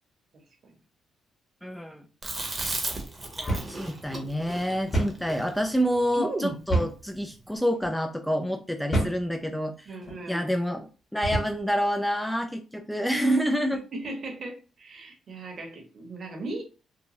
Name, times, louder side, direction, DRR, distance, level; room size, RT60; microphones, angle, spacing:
voice 1, 1.6-2.0 3.4-10.0 10.3-13.8, equal, ahead, 0.3 m, -28 dB
Chewing mastication, 2.2-6.6, right 2 dB, 25° right, 0.8 m, -34 dB
sound 1, 3.5-3.8 4.1-4.2 4.9-5.2 6.7-7.0 7.7-7.9 8.9-9.2 10.0-10.2 11.2-11.6, right 1 dB, 30° left, 1.3 m, -27 dB
voice 2, 9.9-10.5 13.9-16.6, right 2 dB, 50° right, 0.9 m, -38 dB
2.9 x 2.2 x 2.7 m
cardioid pair, 90°, 0 cm